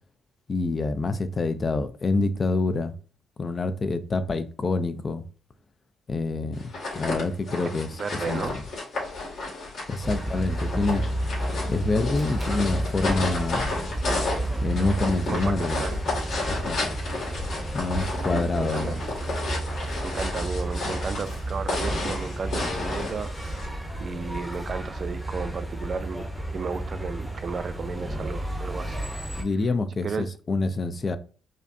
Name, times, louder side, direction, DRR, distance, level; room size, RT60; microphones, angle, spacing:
voice 1, 0.5-2.9 3.4-5.2 6.1-8.0 8.3-8.6 9.9-11.0 11.7-13.8 14.6-15.8 16.5-16.8 17.7-19.0 29.3-31.2, left 3 dB, 35° left, 0.4 m, -27 dB
sound 1, 6.6-23.7, left 2 dB, 60° left, 1.9 m, -32 dB
voice 2, 8.0-8.6 15.3-15.9 18.6-19.0 20.0-23.3 23.6-23.7 24.0-26.2 26.5-29.0 30.0-30.3, right 5 dB, 45° right, 0.4 m, -33 dB
sound 2, 10.0-29.4, right 1 dB, ahead, 0.8 m, -31 dB
5.1 x 2.2 x 2.6 m
cardioid pair, 90°, 0 cm